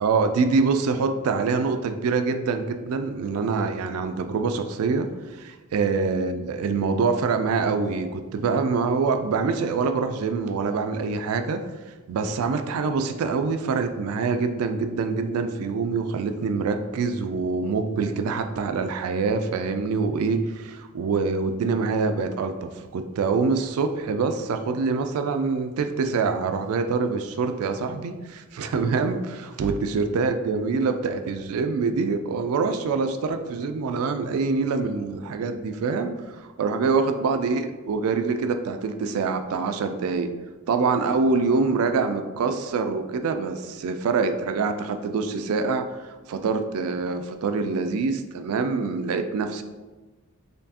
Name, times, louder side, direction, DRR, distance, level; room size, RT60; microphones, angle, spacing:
voice 1, 0.0-11.7 12.1-40.3 40.7-49.6, right 4 dB, 70° right, 7 dB, 0.3 m, -25 dB
4.2 x 3.2 x 2.8 m, 1.2 s
head